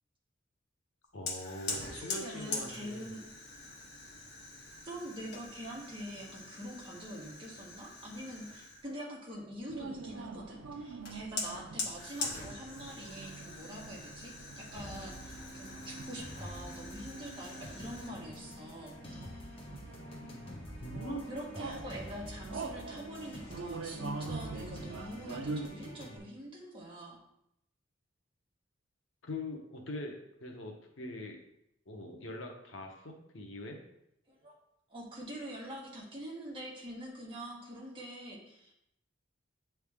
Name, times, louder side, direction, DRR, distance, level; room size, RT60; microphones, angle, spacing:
voice 1, 1.1-3.1 20.8-21.3 29.2-31.4 31.9-33.8, left 1 dB, 80° left, 1 dB, 0.9 m, -42 dB
Fire, 1.3-8.9 11.0-18.1, left 3 dB, 60° left, 1.3 m, -43 dB
voice 2, 1.8-3.2 4.8-18.9 21.3-27.2 34.3-34.5 34.9-38.7, equal, 25° right, -4 dB, 1.5 m, -45 dB
sound 1, 9.7-25.7, right 4 dB, 85° right, 0.5 m, -45 dB
sound 2, 14.8-26.2, equal, 30° left, 1.2 m, -47 dB
8.3 x 3.4 x 3.5 m, 0.79 s
head